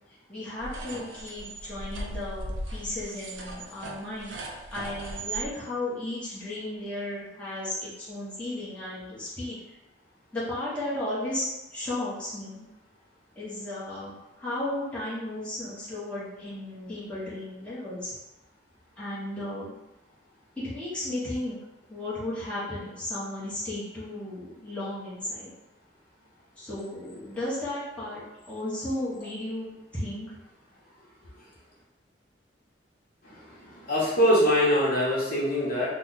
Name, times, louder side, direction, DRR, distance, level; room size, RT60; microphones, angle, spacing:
voice 1, 0.3-4.4 4.7-9.6 10.3-12.6 13.4-18.1 19.0-19.7 20.6-21.6 21.9-25.5 26.6-30.4, left 1 dB, 5° left, -10 dB, 0.9 m, -34 dB
sound 1, 0.6-5.5, right 2 dB, 90° right, 0.5 m, -37 dB
voice 2, 33.2-35.9, equal, 50° left, -6 dB, 1.0 m, -24 dB
3.1 x 2.1 x 3.8 m, 0.97 s
head